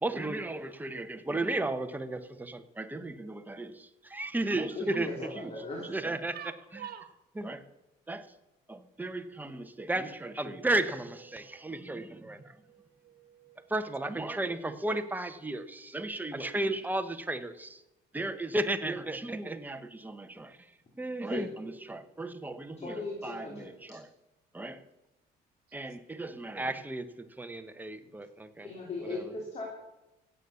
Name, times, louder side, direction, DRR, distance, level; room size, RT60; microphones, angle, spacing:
voice 1, 0.0-6.8 7.4-7.6 8.1-8.3 8.7-12.6 13.7-17.8 18.1-20.7 21.0-24.1 24.5-24.8 25.7-28.7 29.0-29.3, right 2 dB, 10° right, 9 dB, 1.1 m, -35 dB
voice 2, 4.7-5.9 21.3-21.5 22.8-23.7 28.6-29.6, left 3 dB, 40° left, -1 dB, 3.1 m, -38 dB
voice 3, 6.3-7.1 10.4-10.7 11.3-11.8 12.1-13.7 14.9-15.0, right 10 dB, 65° right, 11 dB, 1.3 m, -49 dB
16.0 x 8.5 x 7.0 m, 0.99 s
cardioid pair, 110°, 17 cm